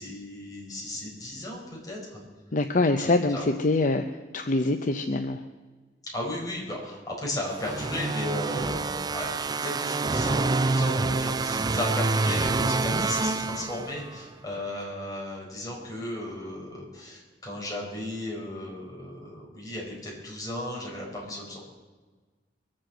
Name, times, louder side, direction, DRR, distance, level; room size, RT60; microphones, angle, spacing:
voice 1, 0.0-2.2 3.0-3.4 6.0-21.6, left 1 dB, 20° left, -3 dB, 4.7 m, -35 dB
voice 2, 2.5-5.4, left 2 dB, 45° left, 7 dB, 0.7 m, -25 dB
sound 1, 7.5-14.2, right 3 dB, 25° right, 0.4 m, -27 dB
22.5 x 7.6 x 7.8 m, 1.3 s
head